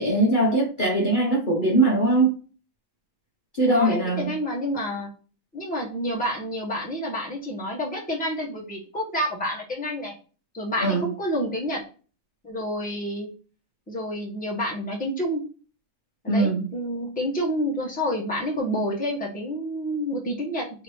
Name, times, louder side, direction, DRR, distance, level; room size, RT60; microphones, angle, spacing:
voice 1, 0.0-2.3 3.6-4.3 10.8-11.1 16.3-16.7, right 2 dB, 40° left, 0.8 m, -21 dB
voice 2, 3.7-5.1 5.5-10.1 10.5-11.8 12.4-13.3 13.9-15.4 16.2-20.8, equal, 5° left, 0.9 m, -29 dB
3.6 x 3.0 x 3.1 m
omnidirectional pair, 1.9 m